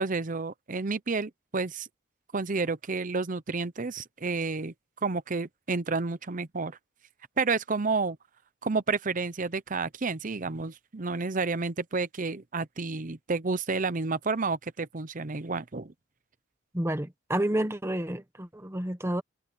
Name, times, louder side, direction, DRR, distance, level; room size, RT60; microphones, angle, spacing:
voice 1, 0.0-1.9 2.3-4.7 5.0-6.8 7.4-8.2 8.6-15.9, right 4 dB, 40° right, 0.8 m, -30 dB
voice 2, 16.7-19.2, right 1 dB, 15° right, 1.1 m, -30 dB
head